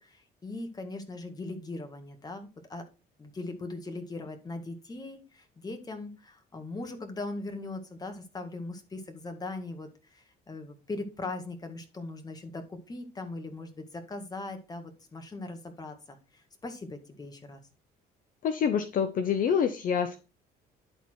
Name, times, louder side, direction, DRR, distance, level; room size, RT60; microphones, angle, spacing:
voice 1, 0.0-2.8 3.2-17.6, left 2 dB, 25° left, 6 dB, 1.9 m, -40 dB
voice 2, 18.4-20.2, left 7 dB, 55° left, 9 dB, 0.8 m, -26 dB
11.0 x 4.3 x 4.6 m, 0.30 s
cardioid pair, 110°, 17 cm